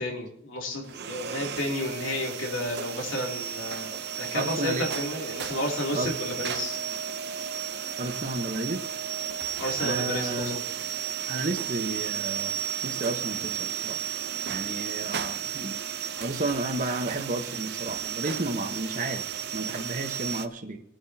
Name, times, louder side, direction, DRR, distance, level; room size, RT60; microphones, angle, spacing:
voice 1, 0.0-6.8 9.6-10.6, left 1 dB, 80° left, 0 dB, 3.0 m, -32 dB
sound 1, 0.8-20.5, right 9 dB, 55° right, 0.7 m, -33 dB
voice 2, 4.3-4.9 5.9-6.2 8.0-8.8 9.8-10.6 11.3-12.5 12.8-14.0 14.5-15.8 16.2-19.3 19.5-20.8, right 2 dB, 40° right, 5 dB, 1.1 m, -32 dB
22.0 x 8.9 x 2.8 m, 0.76 s
head